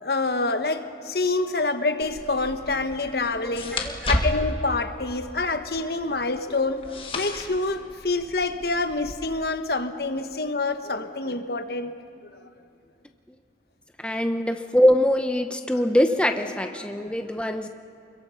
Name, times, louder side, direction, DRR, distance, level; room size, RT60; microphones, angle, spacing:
voice 1, 0.0-11.9 15.7-15.9 16.7-17.1, left 3 dB, 60° left, 8 dB, 1.2 m, -27 dB
sound 1, 2.0-9.1, left 1 dB, 30° left, 1.8 m, -33 dB
voice 2, 3.7-4.3 14.0-17.7, left 1 dB, 5° left, 6 dB, 0.8 m, -23 dB
28.5 x 22.5 x 5.7 m, 2.6 s
head